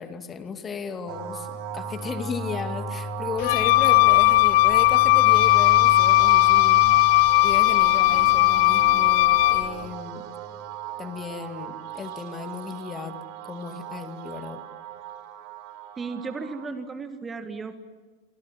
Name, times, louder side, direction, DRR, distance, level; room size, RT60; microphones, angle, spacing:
voice 1, 0.0-6.8 7.4-10.2 11.0-13.2 13.4-14.6, left 6 dB, 20° left, 8 dB, 2.4 m, -35 dB
sound 1, 1.1-16.7, right 5 dB, 45° right, 2.6 m, -36 dB
Wind instrument woodwind instrument, 3.4-9.7, left 19 dB, 50° left, 0.9 m, -18 dB
voice 2, 16.0-17.8, right 4 dB, 15° right, 10 dB, 1.8 m, -34 dB
29.0 x 25.0 x 7.6 m, 1.3 s
figure-of-eight pair, 90°, 0 cm